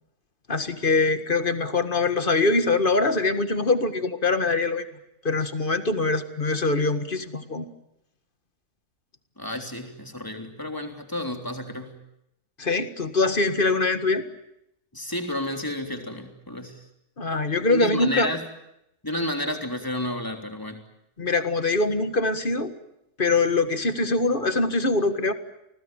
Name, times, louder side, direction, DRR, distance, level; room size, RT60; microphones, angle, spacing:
voice 1, 0.5-4.9 5.2-7.7 12.6-14.3 17.2-18.3 21.2-22.7 23.2-25.3, left 3 dB, 35° left, 10 dB, 1.9 m, -23 dB
voice 2, 9.4-12.0 14.9-16.9 17.7-18.5 19.0-20.8, left 1 dB, 15° left, 5 dB, 3.4 m, -31 dB
29.5 x 20.0 x 9.2 m, 0.82 s
omnidirectional pair, 1.5 m